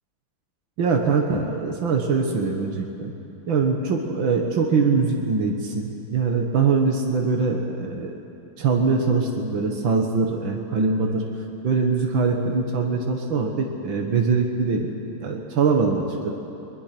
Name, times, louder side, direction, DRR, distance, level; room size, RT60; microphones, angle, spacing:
voice 1, 0.8-3.1 3.5-8.2 8.6-11.2 11.6-16.3, right 4 dB, 80° right, 2 dB, 2.1 m, -23 dB
21.5 x 21.5 x 6.0 m, 2.8 s
omnidirectional pair, 2.1 m